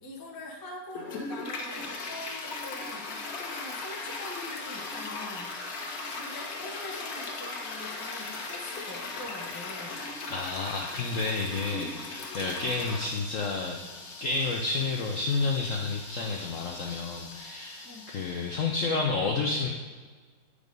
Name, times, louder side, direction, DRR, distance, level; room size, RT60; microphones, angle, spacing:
voice 1, 0.0-5.6 6.1-10.0 17.8-18.1, left 2 dB, 30° left, 0 dB, 0.4 m, -44 dB
Toilet flush, 0.9-18.8, left 3 dB, 55° left, 1.2 m, -39 dB
voice 2, 10.3-13.8 14.2-19.7, left 3 dB, 90° left, 0 dB, 0.7 m, -30 dB
8.3 x 4.9 x 5.2 m, 1.4 s
omnidirectional pair, 2.3 m